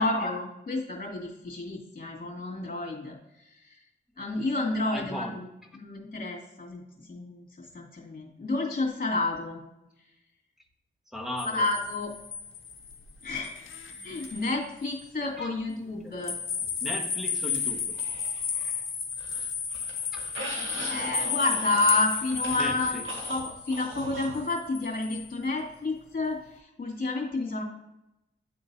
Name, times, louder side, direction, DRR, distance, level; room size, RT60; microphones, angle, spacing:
voice 1, 0.0-3.2 3.5-3.7 4.2-5.5 5.7-9.6 11.4-12.1 13.2-13.5 14.0-16.3 20.9-23.0 23.3-27.6, left 2 dB, 45° left, -1 dB, 2.3 m, -30 dB
voice 2, 4.9-5.4 11.1-11.7 15.4-15.5 15.8-16.2 16.8-17.9 22.6-23.0, left 1 dB, ahead, 2 dB, 1.4 m, -37 dB
sound 1, 11.4-14.6 15.0-15.1 16.2-25.3, left 6 dB, 70° left, 0.7 m, -33 dB
sound 2, 17.5-18.8 19.1-24.5, right 2 dB, 65° right, 1.7 m, -40 dB
10.5 x 3.8 x 2.7 m, 0.88 s
cardioid pair, 65°, 21 cm